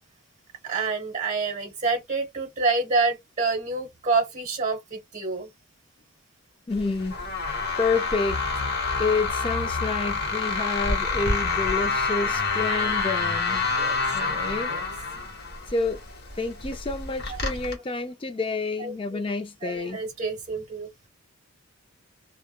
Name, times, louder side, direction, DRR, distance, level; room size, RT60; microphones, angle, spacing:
voice 1, 0.6-5.5 13.8-14.0 14.7-14.8 17.3-17.5 18.8-18.9 19.6-20.9, right 3 dB, 30° right, 1.0 m, -27 dB
sound 1, 6.7-17.7, left 4 dB, 45° left, 0.9 m, -28 dB
voice 2, 6.7-7.1 7.8-8.4 9.0-13.7 14.1-14.7 15.7-16.0 16.4-20.0, left 3 dB, 25° left, 0.4 m, -29 dB
3.3 x 2.1 x 2.2 m
head